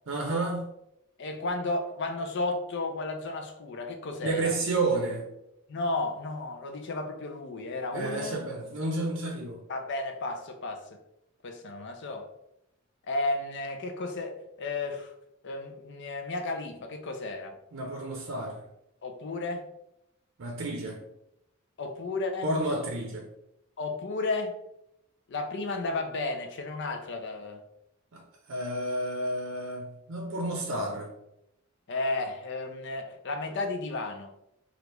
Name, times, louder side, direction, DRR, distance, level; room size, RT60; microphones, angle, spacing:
voice 1, 0.1-0.7 4.2-5.3 7.9-9.7 17.7-18.6 20.4-21.0 22.4-23.3 28.1-31.1, right 2 dB, 65° right, 0.6 m, -31 dB
voice 2, 1.2-4.6 5.7-8.4 9.7-11.0 11.4-12.3 13.1-15.1 15.4-17.6 19.0-19.7 21.8-22.5 23.8-24.6 25.3-27.6 31.9-34.3, left 2 dB, 60° left, 0.5 m, -33 dB
3.3 x 2.4 x 2.9 m
head